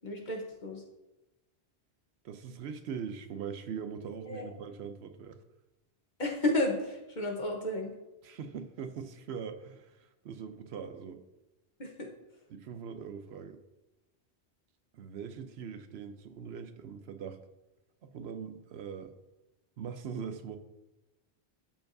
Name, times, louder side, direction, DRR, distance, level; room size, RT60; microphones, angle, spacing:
voice 1, 0.0-0.8 4.3-4.5 6.2-7.9 11.8-12.1, left 1 dB, 45° left, 1 dB, 1.2 m, -32 dB
voice 2, 2.2-5.4 8.2-11.2 12.5-13.6 14.9-17.4 18.0-19.1 19.8-20.6, right 6 dB, 75° right, 8 dB, 0.8 m, -41 dB
12.5 x 4.7 x 2.6 m, 1.0 s
omnidirectional pair, 1.1 m